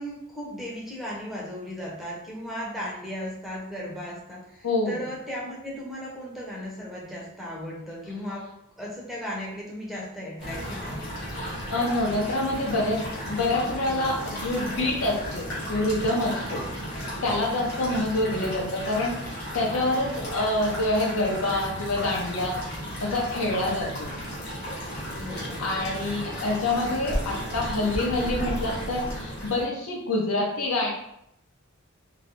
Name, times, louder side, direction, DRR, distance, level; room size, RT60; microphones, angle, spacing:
voice 1, 0.0-11.1 18.0-18.1 25.2-25.7, equal, ahead, -5 dB, 0.5 m, -36 dB
voice 2, 4.6-5.0 11.4-13.0 13.3-16.7 17.2-22.5 23.0-24.1 25.6-30.9, left 2 dB, 85° left, -1 dB, 0.7 m, -26 dB
sound 1, 10.4-29.6, equal, 50° left, 1.0 m, -34 dB
2.4 x 2.0 x 2.8 m, 0.77 s
head